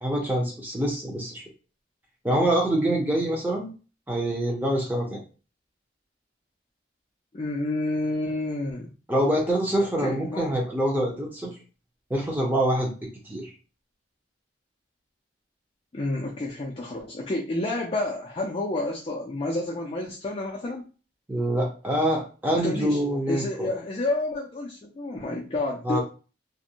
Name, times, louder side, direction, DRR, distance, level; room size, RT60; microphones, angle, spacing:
voice 1, 0.0-1.4 2.2-3.7 4.1-5.2 9.1-11.5 12.1-12.9 13.3-13.5 21.3-23.7 25.8-26.0, right 1 dB, 10° right, -1 dB, 0.6 m, -25 dB
voice 2, 7.3-8.9 10.0-10.6 15.9-20.9 22.6-23.0 23.3-26.0, left 2 dB, 30° left, -2 dB, 0.4 m, -29 dB
2.5 x 2.1 x 2.8 m, 0.35 s
head